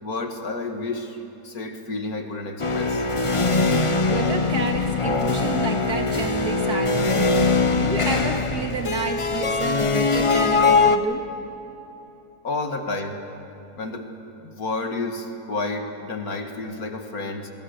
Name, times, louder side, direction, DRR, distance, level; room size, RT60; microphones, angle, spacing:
voice 1, 0.0-3.1 12.4-13.2 13.8-14.1 14.4-17.5, left 3 dB, 60° left, 5 dB, 2.1 m, -30 dB
sound 1, 2.6-11.0, left 3 dB, 25° left, 0.7 m, -21 dB
voice 2, 4.1-7.4 7.8-11.2, right 4 dB, 65° right, 3 dB, 2.5 m, -30 dB
25.5 x 22.0 x 6.7 m, 3.0 s
omnidirectional pair, 1.8 m